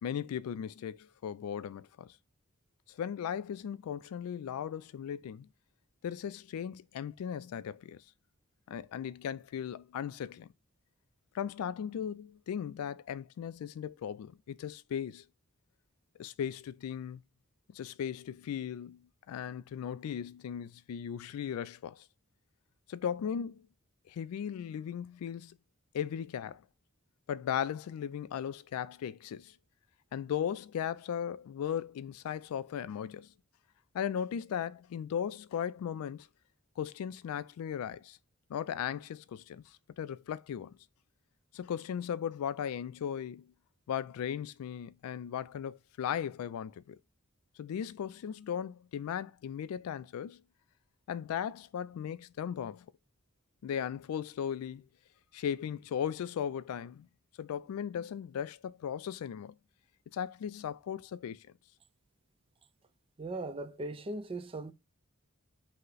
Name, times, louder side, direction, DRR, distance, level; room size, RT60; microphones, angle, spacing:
voice 1, 0.0-2.1 2.9-5.5 6.0-8.0 8.7-10.5 11.3-15.2 16.2-17.2 17.7-19.0 19.3-22.1 22.9-23.6 24.1-25.6 25.9-26.6 27.3-29.5 30.1-33.3 33.9-36.3 36.8-38.2 38.5-39.6 40.0-40.8 41.5-43.5 43.9-47.0 47.6-50.4 51.1-52.9 53.6-54.9 55.3-57.1 57.4-59.6 60.1-61.4, left 8 dB, 90° left, 0.3 m, -37 dB
voice 2, 63.2-64.7, right 2 dB, 25° right, 0.4 m, -38 dB
5.4 x 2.1 x 3.9 m
head